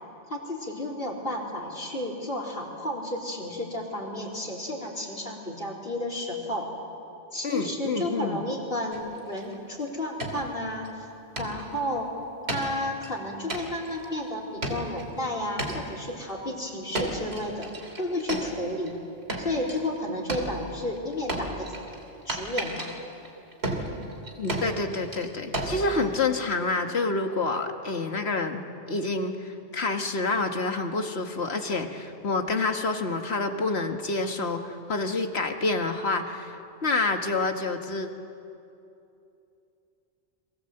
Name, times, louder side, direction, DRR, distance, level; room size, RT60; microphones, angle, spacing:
voice 1, 0.3-6.7 7.3-11.1 11.4-12.1 12.4-17.7 18.0-18.9 19.3-21.7 22.3-23.0, left 1 dB, 60° left, 0 dB, 4.3 m, -32 dB
voice 2, 7.4-8.4 24.4-28.6 28.9-38.1, left 3 dB, 75° left, 5 dB, 1.9 m, -28 dB
sound 1, 8.9-9.5 9.9-10.0 10.2-10.9 11.4-11.8 12.5-13.1 13.5-14.1 14.6-15.2 15.6-16.1 16.9-18.9 19.3-20.0 20.3-26.5, right 1 dB, 75° right, 3.3 m, -34 dB
30.0 x 23.5 x 8.0 m, 2.7 s
omnidirectional pair, 1.1 m